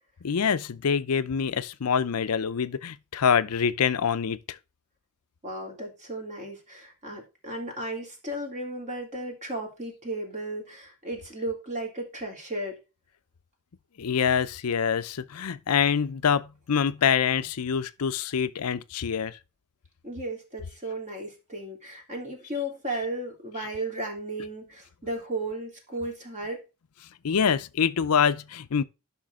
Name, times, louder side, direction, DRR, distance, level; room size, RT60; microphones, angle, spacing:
voice 1, 0.2-4.6 14.0-19.4 27.2-28.8, left 7 dB, 90° left, 0.5 m, -25 dB
voice 2, 5.4-12.8 20.0-26.6, right 1 dB, 35° right, 3.2 m, -35 dB
11.5 x 5.8 x 3.6 m
head